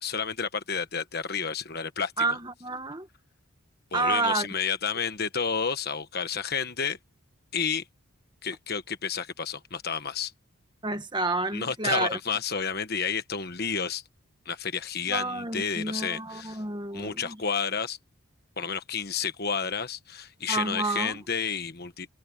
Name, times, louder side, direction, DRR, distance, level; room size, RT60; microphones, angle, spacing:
voice 1, 0.0-2.3 3.9-7.0 7.5-7.8 8.4-10.3 11.5-14.0 14.4-16.6 16.9-18.0 18.6-22.1, left 6 dB, 45° left, 1.3 m, -30 dB
voice 2, 2.2-3.1 3.9-4.5 10.8-12.2 15.1-17.4 20.5-21.2, right 3 dB, 20° right, 1.6 m, -29 dB
head